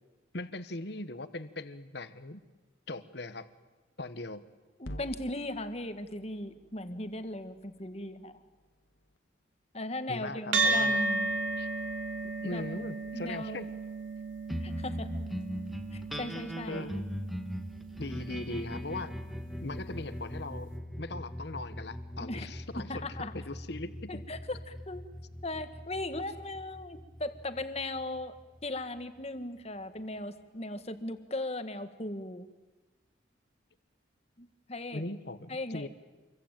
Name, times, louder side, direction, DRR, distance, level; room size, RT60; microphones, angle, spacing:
voice 1, 0.3-2.4 2.9-3.5 4.0-4.5 10.1-11.0 11.6-11.7 12.4-13.8 16.7-17.0 18.0-19.1 19.6-20.7 21.0-23.1 23.3-24.2 34.9-35.9, left 2 dB, 60° left, 12 dB, 1.3 m, -39 dB
sound 1, 4.8-9.2, left 1 dB, 80° left, 1.9 m, -50 dB
voice 2, 4.8-8.4 9.7-11.3 12.2-12.6 13.1-13.6 14.6-15.1 15.9-16.8 22.2-22.5 22.7-23.3 24.1-25.0 25.4-28.3 28.6-32.5 34.4-35.0 35.5-35.9, left 2 dB, 35° left, 9 dB, 1.6 m, -38 dB
sound 2, 10.5-19.2, right 3 dB, 85° right, 2.9 m, -34 dB
sound 3, 14.5-29.2, equal, ahead, 1.6 m, -40 dB
27.5 x 23.0 x 9.1 m, 1.2 s
head